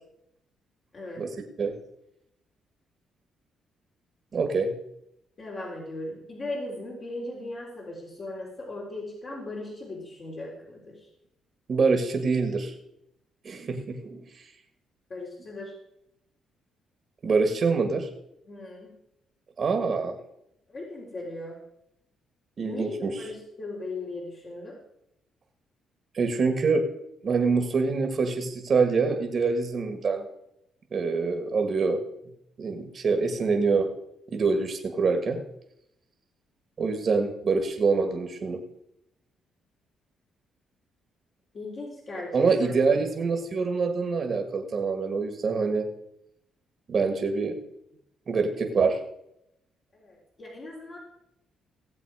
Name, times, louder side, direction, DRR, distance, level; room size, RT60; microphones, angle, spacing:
voice 1, 4.3-4.7 11.7-12.7 13.4-14.4 17.2-18.1 19.6-20.2 22.6-23.3 26.1-26.8 27.2-30.3 30.9-32.0 32.6-33.9 34.3-35.4 36.8-38.6 42.3-45.9 46.9-47.5 48.3-49.0, right 4 dB, 45° right, 5 dB, 1.6 m, -25 dB
voice 2, 5.4-11.0 15.1-15.7 18.5-18.9 20.7-21.6 22.6-24.7 41.5-43.0 49.9-51.0, left 2 dB, 45° left, -5 dB, 3.7 m, -38 dB
17.5 x 7.6 x 4.8 m, 0.83 s
cardioid pair, 90°, 0 cm